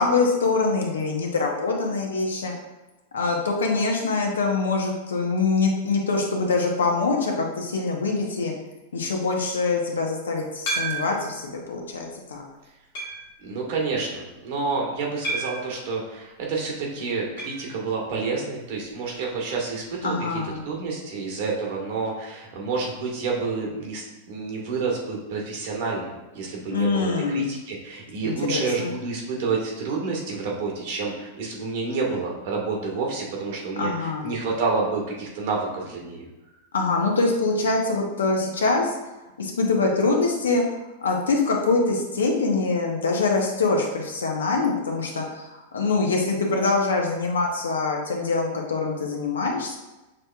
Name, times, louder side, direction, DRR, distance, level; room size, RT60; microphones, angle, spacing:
voice 1, 0.0-2.5 3.1-8.5 8.9-12.4 20.0-20.7 26.7-27.5 28.2-28.9 33.8-34.3 36.7-39.0 39.4-40.6 41.0-49.8, left 3 dB, 80° left, 1 dB, 0.8 m, -24 dB
sound 1, 10.7-11.3 12.0-12.1 12.9-13.3 15.2-15.7 17.4-17.7 17.9-18.0 18.3-18.4 20.4-20.5, right 2 dB, 65° left, 1.2 m, -30 dB
voice 2, 13.4-20.1 20.6-36.2, right 4 dB, 60° right, -2 dB, 1.3 m, -29 dB
6.3 x 2.9 x 2.3 m, 1.0 s
hypercardioid pair, 100°, 0 cm